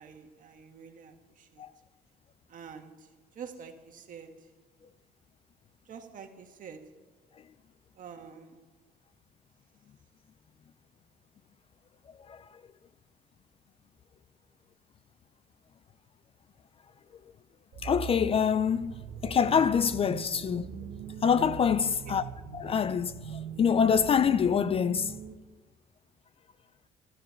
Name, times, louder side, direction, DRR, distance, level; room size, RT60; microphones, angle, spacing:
voice 1, 0.0-1.6 2.5-4.5 5.8-6.8 7.9-8.6 21.8-22.2, right 6 dB, 50° right, 1.6 m, -47 dB
sound 1, 17.7-25.4, right 7 dB, 75° right, 1.2 m, -41 dB
voice 2, 17.8-20.7 21.2-22.2 22.5-25.1, left 7 dB, 35° left, 0.4 m, -26 dB
13.0 x 12.5 x 5.7 m
cardioid pair, 110°, 17 cm